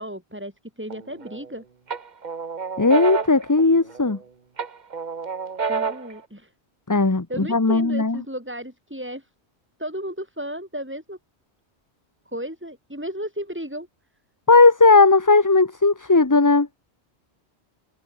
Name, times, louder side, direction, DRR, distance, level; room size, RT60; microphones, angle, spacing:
voice 1, 0.0-1.6 5.7-6.5 7.3-9.3 9.8-11.2 12.3-13.9, equal, 10° right, 6.6 m, -34 dB
sound 1, 0.9-1.5 1.9-4.2 4.6-6.2, right 5 dB, 40° right, 1.2 m, -29 dB
voice 2, 2.8-4.2 6.9-8.2 14.5-16.7, left 3 dB, 20° left, 0.9 m, -17 dB
omnidirectional pair, 1.1 m